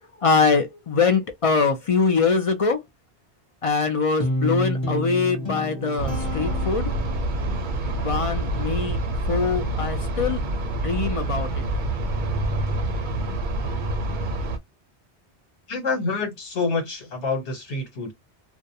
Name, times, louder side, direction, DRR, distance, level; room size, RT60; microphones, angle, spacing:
voice 1, 0.2-2.8 3.6-6.9 7.9-9.0 9.3-10.4 10.7-11.5, left 4 dB, 60° left, 0.3 m, -23 dB
Guitar, 4.2-7.5, equal, 30° left, 0.7 m, -29 dB
sound 1, 6.0-14.6, right 1 dB, 55° right, 0.6 m, -27 dB
voice 2, 15.7-18.1, left 4 dB, 80° left, 1.3 m, -27 dB
2.3 x 2.1 x 2.6 m
omnidirectional pair, 1.1 m